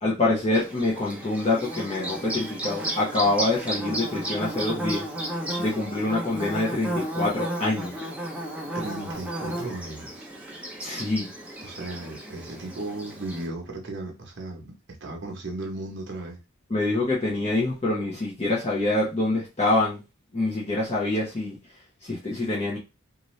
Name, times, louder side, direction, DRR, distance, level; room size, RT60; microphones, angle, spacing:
voice 1, 0.0-5.1 5.6-8.1 10.8-11.3 16.7-20.0 20.3-21.6 22.0-22.8, left 2 dB, 30° left, -5 dB, 0.8 m, -25 dB
Bird / Buzz, 0.5-13.5, right 1 dB, 5° right, 0.5 m, -33 dB
voice 2, 8.7-10.3 11.6-16.4, right 2 dB, 55° right, 1 dB, 0.9 m, -36 dB
2.7 x 2.5 x 3.1 m, 0.27 s
head